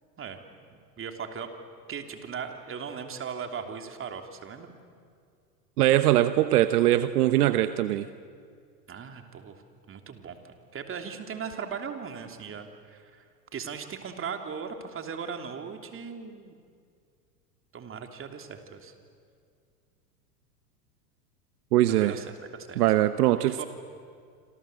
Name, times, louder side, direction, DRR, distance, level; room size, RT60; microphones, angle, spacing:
voice 1, 1.0-1.5 1.9-4.7 8.9-9.6 9.9-10.4 10.7-13.2 13.5-16.5 17.7-18.9 21.8-22.8 23.4-23.7, right 6 dB, 25° right, 6 dB, 3.2 m, -38 dB
voice 2, 5.8-8.1 21.7-22.2 22.8-23.6, right 14 dB, 65° right, 12 dB, 1.1 m, -22 dB
27.0 x 27.0 x 8.0 m, 2.2 s
hypercardioid pair, 100°, 48 cm